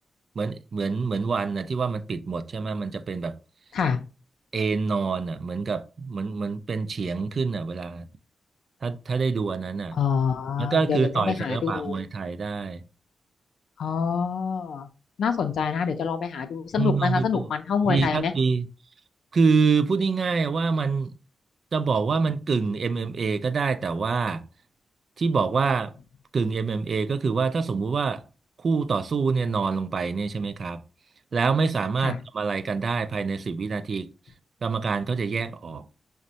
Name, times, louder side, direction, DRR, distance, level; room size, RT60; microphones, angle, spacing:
voice 1, 0.4-3.4 4.5-8.1 8.8-10.0 10.6-12.8 16.8-17.4 17.9-18.7 19.3-21.1 21.7-24.4 25.2-25.9 26.3-28.2 28.6-30.8 31.3-34.1 34.6-35.8, right 4 dB, 50° right, 0.3 m, -26 dB
voice 2, 9.9-11.9 13.8-14.9 15.2-18.3 32.0-32.2, left 6 dB, 85° left, 0.5 m, -26 dB
6.0 x 2.1 x 2.7 m
wide cardioid pair, 115°, 0 cm